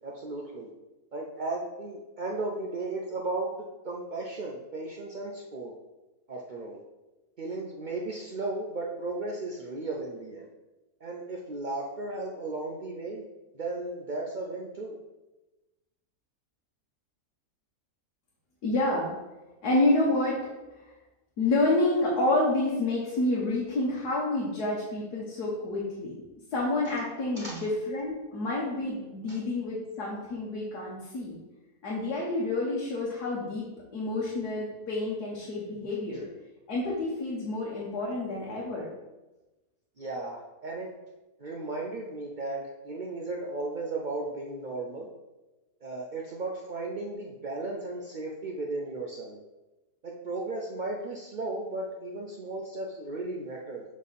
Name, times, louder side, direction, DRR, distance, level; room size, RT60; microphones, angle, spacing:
voice 1, 0.0-0.7 1.1-3.5 3.8-5.7 6.3-6.8 7.4-10.5 11.0-13.2 13.5-14.9 27.4-27.6 29.3-29.4 40.0-40.9 41.4-45.1 45.8-49.4 50.0-53.8, right 2 dB, 80° right, -1 dB, 0.4 m, -35 dB
voice 2, 18.6-19.1 19.6-20.4 21.4-26.2 26.5-31.4 31.8-33.6 33.9-36.2 36.7-38.8, left 2 dB, 85° left, -5 dB, 1.7 m, -28 dB
7.4 x 3.6 x 4.2 m, 1.1 s
omnidirectional pair, 1.7 m